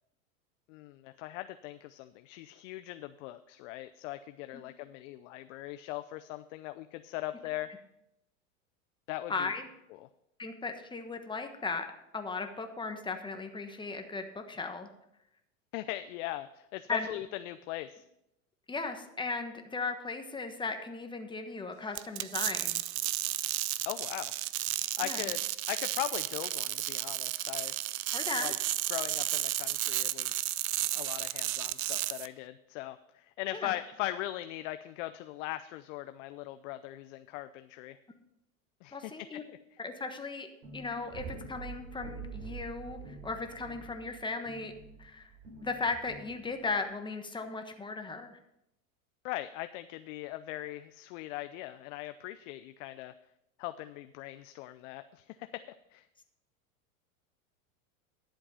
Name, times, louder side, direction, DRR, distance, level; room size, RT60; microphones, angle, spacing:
voice 1, 0.7-7.7 9.1-9.5 10.0-10.1 15.7-18.0 23.9-24.3 25.0-25.4 25.7-27.7 28.4-28.5 28.9-30.5 30.9-38.0 38.8-39.4 49.2-53.1 53.6-55.5 55.9-56.1, left 15 dB, 65° left, 10 dB, 0.6 m, -40 dB
voice 2, 9.3-9.7 10.4-11.9 12.1-14.9 16.9-17.1 18.7-22.8 25.0-25.2 28.1-28.5 33.5-33.7 38.9-39.4 39.8-40.5 40.7-44.7 45.0-45.3 45.6-48.4, left 4 dB, 10° left, 6 dB, 1.3 m, -37 dB
sound 1, 21.9-32.3, right 15 dB, 85° right, 0.6 m, -33 dB
sound 2, 40.6-46.8, right 5 dB, 60° right, 5.2 m, -46 dB
11.5 x 7.7 x 5.6 m, 0.83 s
hypercardioid pair, 105°, 41 cm